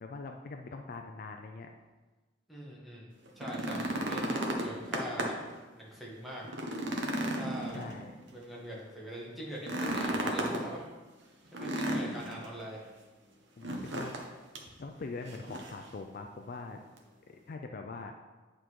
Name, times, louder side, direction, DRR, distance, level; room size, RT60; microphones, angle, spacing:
voice 1, 0.0-1.7 7.7-8.1 13.6-14.1 14.8-16.8 17.5-18.1, left 3 dB, 50° left, 4 dB, 0.4 m, -42 dB
voice 2, 2.5-5.4 5.7-6.5 7.4-7.8 8.3-10.8 11.5-12.9, right 1 dB, ahead, -5 dB, 1.6 m, -42 dB
sound 1, 3.3-5.5 5.9-6.0 6.4-8.3 9.6-10.6 11.5-12.5 13.6-14.3 14.5-14.7 15.3-15.8 17.0-17.1, right 1 dB, 75° right, 1.0 m, -34 dB
9.0 x 3.8 x 4.7 m, 1.2 s
head